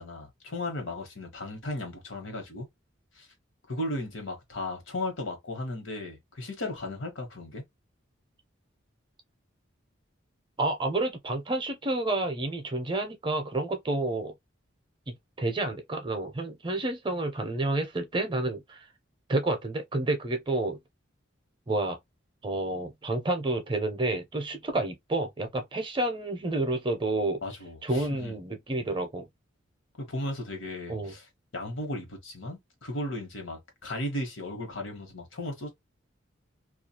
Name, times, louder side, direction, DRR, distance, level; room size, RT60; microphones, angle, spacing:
voice 1, 0.0-2.7 3.1-3.3 3.7-7.6 27.4-28.3 30.0-31.3 31.5-35.7, left 1 dB, 80° left, 1.1 m, -36 dB
voice 2, 10.6-14.3 15.1-18.8 19.3-20.8 21.7-22.0 22.4-27.4 27.8-29.3 30.9-31.1, right 2 dB, 25° right, 0.6 m, -29 dB
2.4 x 2.3 x 2.8 m
head